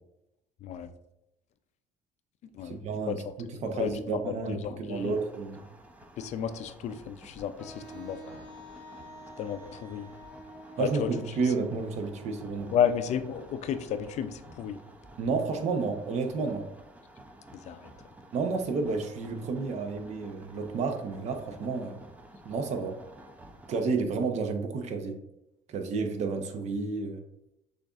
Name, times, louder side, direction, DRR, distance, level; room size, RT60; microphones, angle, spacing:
voice 1, 2.6-5.6 10.8-12.8 15.2-16.7 18.3-22.0 22.4-23.0 23.7-25.2 25.7-27.2, right 4 dB, 55° right, 6 dB, 0.7 m, -31 dB
voice 2, 3.7-5.1 6.2-8.2 9.4-10.1 10.8-11.1 12.7-14.8 17.7-17.9, left 8 dB, 55° left, 10 dB, 0.4 m, -32 dB
sound 1, 4.9-23.8, right 1 dB, 10° right, 0.5 m, -52 dB
Wind instrument woodwind instrument, 7.6-13.3, right 1 dB, 5° left, 1.2 m, -48 dB
6.4 x 2.5 x 2.4 m, 0.84 s
cardioid pair, 100°, 14 cm